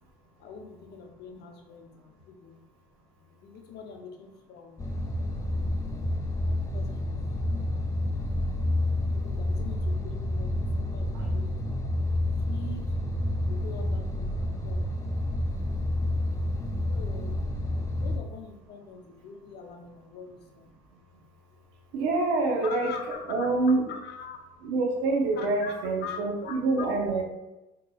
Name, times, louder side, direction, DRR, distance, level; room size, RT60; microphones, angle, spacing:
voice 1, 0.4-2.6 3.2-4.9 5.5-7.2 9.1-11.8 12.2-13.0 13.4-14.9 16.9-17.4 18.0-20.7 22.6-23.5 23.9-24.4 25.4-25.7 26.0-27.2, left 6 dB, 55° left, 2 dB, 0.6 m, -44 dB
sound 1, 4.8-18.2, left 1 dB, 15° left, 0.4 m, -29 dB
voice 2, 21.9-23.0 23.3-23.8 24.6-27.2, right 3 dB, 80° right, 1 dB, 0.6 m, -26 dB
3.8 x 2.9 x 2.3 m, 0.99 s
supercardioid pair, 90°, 21 cm